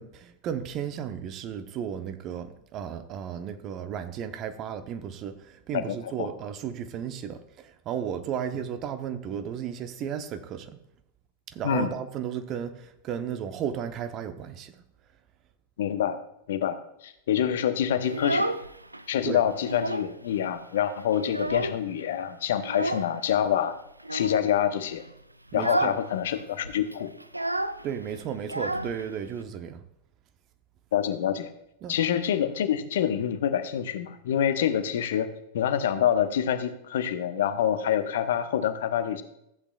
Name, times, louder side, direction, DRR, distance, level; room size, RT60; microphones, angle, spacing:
voice 1, 0.0-10.8 11.5-14.7 19.2-19.4 25.5-25.9 27.8-29.8 31.8-32.0, right 8 dB, 35° right, 0.8 m, -34 dB
voice 2, 5.9-6.3 11.6-11.9 15.8-16.2 16.5-16.8 17.0-18.5 19.1-23.8 24.1-25.0 25.5-27.1 30.9-31.5 31.9-35.3 35.5-39.2, left 9 dB, 60° left, 0.8 m, -26 dB
Child speech kid speaking, 18.0-19.0 19.4-20.2 20.5-20.6 20.9-22.0 22.6-23.1 24.0-24.5 24.9-25.1 25.5-26.1 26.3-26.4 26.6-29.4, right 1 dB, 85° right, 0.4 m, -31 dB
14.5 x 8.2 x 2.4 m
figure-of-eight pair, 90°, 0 cm